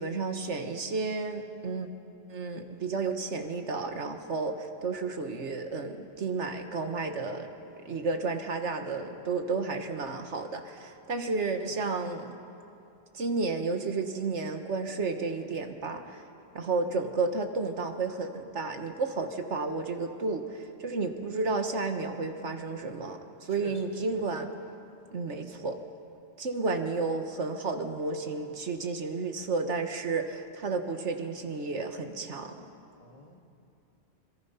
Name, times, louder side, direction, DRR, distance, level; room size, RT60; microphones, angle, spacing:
voice 1, 0.0-1.9 2.3-7.5 7.8-12.3 13.1-16.2 16.5-24.5 25.1-25.8 26.4-32.7, right 3 dB, 85° right, 6 dB, 1.7 m, -32 dB
voice 2, 23.5-24.2 33.0-33.4, left 2 dB, 30° left, 2 dB, 1.9 m, -49 dB
25.5 x 21.5 x 5.7 m, 2.7 s
omnidirectional pair, 1.2 m